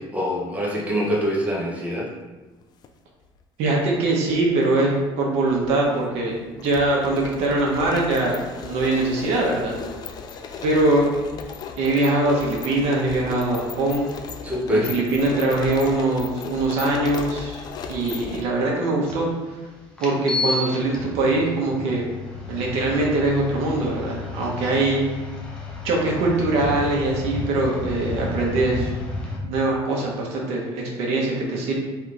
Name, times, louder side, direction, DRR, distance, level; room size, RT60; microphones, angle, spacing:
voice 1, 0.0-2.1 14.4-14.9, equal, 15° right, -4 dB, 1.0 m, -24 dB
sound 1, 2.6-2.9 3.9-4.7 4.9-5.0 5.5-18.4, left 5 dB, 40° left, 0.4 m, -36 dB
voice 2, 3.6-8.3 8.6-9.8 10.6-11.1 11.8-14.0 14.7-17.6 17.9-19.3 20.0-22.1 22.5-25.0 25.8-28.9 29.4-31.7, right 2 dB, 70° right, -2 dB, 1.1 m, -22 dB
sound 2, 19.1-19.2 20.0-29.4, left 2 dB, 10° left, 0.8 m, -32 dB
3.4 x 3.0 x 3.9 m, 1.2 s
cardioid pair, 130°, 11 cm